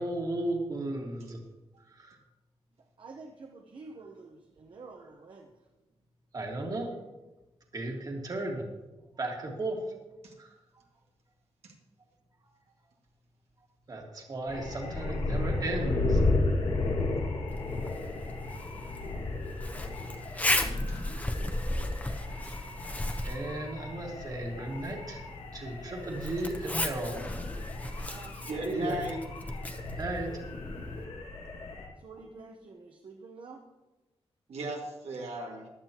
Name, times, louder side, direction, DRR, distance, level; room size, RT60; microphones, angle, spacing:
voice 1, 0.0-1.4 2.0-2.2 6.3-6.9 7.7-8.6 9.2-9.8 10.4-10.5 13.9-16.2 23.2-25.2 25.5-27.2 28.6-29.1 30.0-30.3, right 2 dB, 40° right, 1 dB, 1.9 m, -35 dB
voice 2, 3.0-5.5 28.1-28.9 32.0-33.6, right 3 dB, 55° right, 1 dB, 1.1 m, -48 dB
sound 1, 14.5-31.9, left 2 dB, 80° left, 2.1 m, -34 dB
Zipper (clothing), 17.5-31.0, left 1 dB, 15° left, 0.9 m, -36 dB
voice 3, 28.5-29.2 34.5-35.7, right 1 dB, 90° right, 0 dB, 2.1 m, -36 dB
15.5 x 11.0 x 3.0 m, 1.1 s
wide cardioid pair, 140°, 10 cm